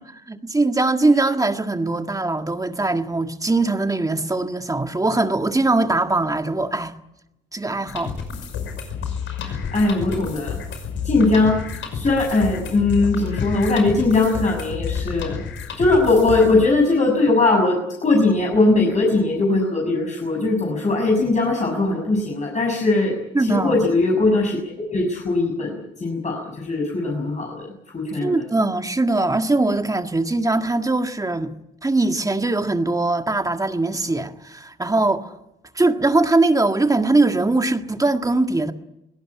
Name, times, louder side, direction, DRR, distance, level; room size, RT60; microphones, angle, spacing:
voice 1, 0.3-6.9 7.5-8.1 9.4-9.6 23.3-23.8 28.2-31.5 31.8-35.3 35.7-38.7, right 2 dB, 15° right, 1.7 m, -21 dB
sound 1, 7.9-16.5, left 6 dB, 75° left, 5.6 m, -30 dB
voice 2, 9.7-10.6 11.0-15.4 15.8-24.6 24.9-28.4, left 2 dB, 35° left, 6.4 m, -20 dB
23.0 x 17.5 x 9.8 m
cardioid pair, 90°, 20 cm